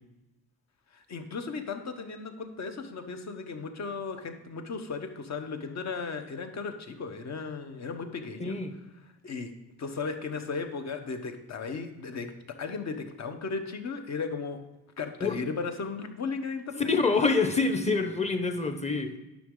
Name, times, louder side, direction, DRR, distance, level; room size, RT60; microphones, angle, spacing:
voice 1, 0.9-8.6 9.2-9.5 9.8-14.6 15.0-16.9, left 4 dB, 45° left, 6 dB, 1.1 m, -36 dB
voice 2, 8.4-8.7 15.2-15.4 16.9-19.2, left 4 dB, 20° left, 7 dB, 0.9 m, -26 dB
10.0 x 6.4 x 3.8 m, 1.0 s
cardioid pair, 115°, 37 cm